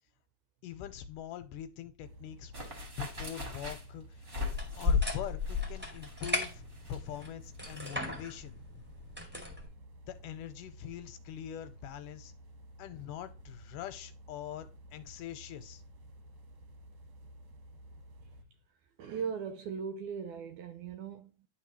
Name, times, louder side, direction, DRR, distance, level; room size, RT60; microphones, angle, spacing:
voice 1, 0.6-2.5 3.0-4.4 4.8-8.9 10.1-12.3 12.8-15.8, left 10 dB, 80° left, 2.1 m, -43 dB
sound 1, 2.0-18.4, equal, 60° right, 1.6 m, -53 dB
sound 2, 2.5-7.9 8.2-8.3, left 5 dB, 25° right, 1.3 m, -34 dB
sound 3, 4.4-9.7, left 1 dB, 5° right, 0.9 m, -40 dB
voice 2, 19.0-21.5, right 6 dB, 85° right, 1.8 m, -39 dB
11.0 x 4.0 x 3.0 m
omnidirectional pair, 4.0 m